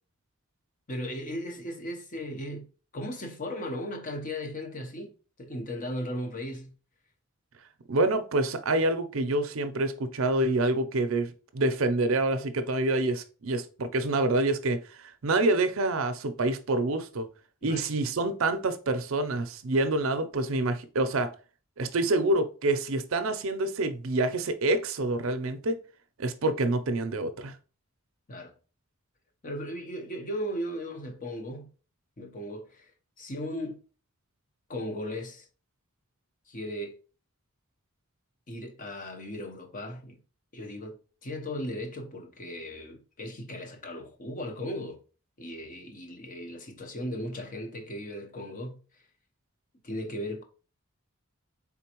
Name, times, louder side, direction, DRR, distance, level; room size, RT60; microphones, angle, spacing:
voice 1, 0.9-2.7 2.9-6.7 17.6-18.0 28.3-28.5 29.4-31.7 32.2-32.9 33.2-33.8 34.7-35.5 36.5-37.0 38.5-40.2 40.5-45.0 45.4-49.0 49.8-50.4, equal, 40° left, 0.9 m, -37 dB
voice 2, 7.9-17.3 17.6-21.3 21.8-25.8 26.2-27.5, right 2 dB, 65° right, 0.6 m, -27 dB
4.3 x 3.7 x 3.0 m
head